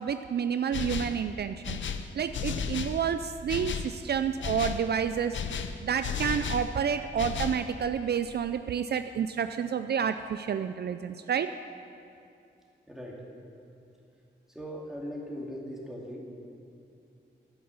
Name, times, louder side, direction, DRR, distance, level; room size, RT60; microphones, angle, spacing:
voice 1, 0.0-1.8 2.2-5.4 5.8-11.5, right 7 dB, 60° right, 9 dB, 0.4 m, -29 dB
sound 1, 0.7-1.2 1.6-3.0 3.5-3.9 4.4-4.9 5.3-6.7 7.2-7.6, left 6 dB, 85° left, 0.7 m, -33 dB
voice 2, 12.9-13.2 14.5-16.2, equal, ahead, -3 dB, 2.4 m, -39 dB
13.0 x 8.7 x 6.9 m, 2.6 s
wide cardioid pair, 110°, 19 cm